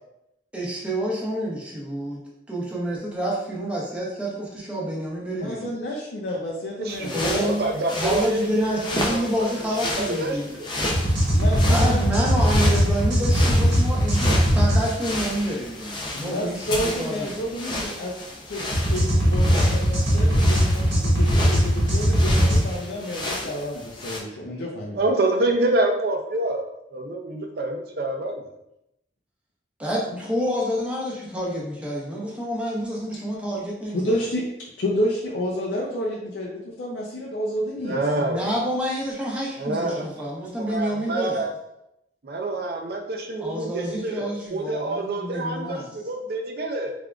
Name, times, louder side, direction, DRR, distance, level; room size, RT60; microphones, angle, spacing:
voice 1, 0.5-2.2 2.5-5.7 7.1-7.7 7.9-10.5 11.7-17.3 29.8-34.0 38.2-41.4 43.4-45.9, equal, 5° right, -5 dB, 0.8 m, -28 dB
voice 2, 5.3-7.5 11.3-12.0 16.1-25.1 30.1-30.2 33.9-34.4 34.8-38.0, equal, 90° left, -3 dB, 0.6 m, -30 dB
voice 3, 6.8-7.1 7.4-9.5 10.0-10.7 24.9-26.6 26.9-28.5 37.8-38.4 39.6-40.1 40.6-41.5 42.2-46.9, right 2 dB, 60° right, 3 dB, 0.5 m, -27 dB
sound 1, 6.9-24.2, left 1 dB, 25° left, 0.5 m, -32 dB
sound 2, 10.9-14.8 18.7-22.6, equal, 90° right, 1.4 m, -19 dB
3.5 x 3.4 x 2.4 m, 0.82 s
head